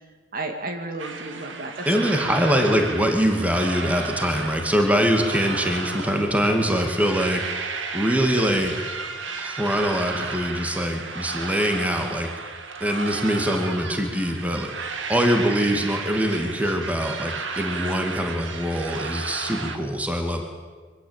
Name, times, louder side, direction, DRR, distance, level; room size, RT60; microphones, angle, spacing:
voice 1, 0.3-2.5 5.5-5.6, right 2 dB, 45° right, 5 dB, 2.2 m, -33 dB
sound 1, 1.0-19.8, right 4 dB, 70° right, 2.1 m, -33 dB
voice 2, 1.9-7.7 7.9-8.7 9.4-12.3 12.8-20.5, equal, 5° right, 4 dB, 2.3 m, -23 dB
24.0 x 16.5 x 8.9 m, 1.5 s
head